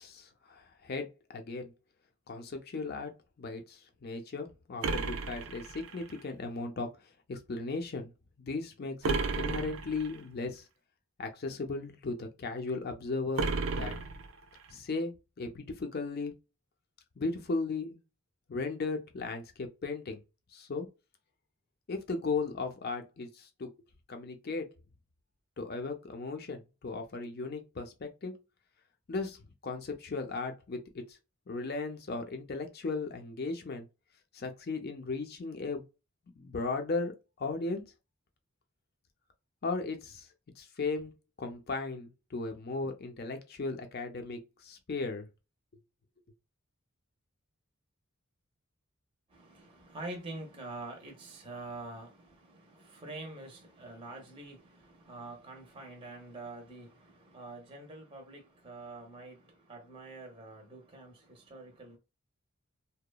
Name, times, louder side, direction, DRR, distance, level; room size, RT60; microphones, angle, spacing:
voice 1, 0.0-1.7 2.3-3.1 3.4-6.9 7.3-8.1 8.4-10.6 11.2-14.0 14.7-16.3 17.2-18.0 18.5-20.2 20.5-20.9 21.9-23.7 24.1-24.7 25.6-28.3 29.1-29.4 29.6-31.0 31.5-33.9 34.3-35.8 36.4-37.8 39.6-40.3 40.6-41.1 41.4-45.3, left 3 dB, 45° left, 0.5 m, -36 dB
sound 1, 4.8-6.2 9.0-10.2 13.4-14.7, right 3 dB, 70° right, 0.4 m, -33 dB
voice 2, 49.3-62.0, right 2 dB, 25° right, 0.6 m, -46 dB
2.8 x 2.1 x 2.2 m
head